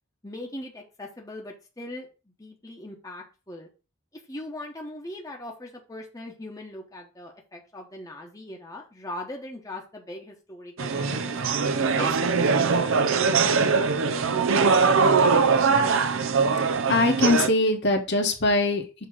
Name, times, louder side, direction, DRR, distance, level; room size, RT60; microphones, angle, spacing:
voice 1, 0.2-2.1 2.4-3.7 4.3-11.4 11.8-13.5, left 1 dB, 15° left, 0 dB, 1.0 m, -40 dB
sound 1, 10.8-17.5, right 5 dB, 75° right, 0.6 m, -22 dB
voice 2, 16.6-19.0, left 2 dB, 55° left, 3 dB, 1.3 m, -23 dB
6.6 x 3.0 x 5.9 m, 0.32 s
head